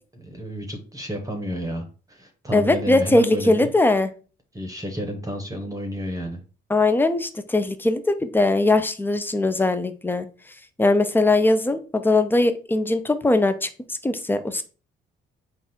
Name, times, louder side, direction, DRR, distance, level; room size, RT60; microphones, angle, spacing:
voice 1, 0.3-3.7 4.5-6.4, equal, 15° right, 3 dB, 0.9 m, -31 dB
voice 2, 2.5-4.1 6.7-10.3 10.8-14.6, left 2 dB, 10° left, 10 dB, 0.5 m, -20 dB
3.9 x 2.4 x 4.3 m, 0.37 s
cardioid pair, 90°, 20 cm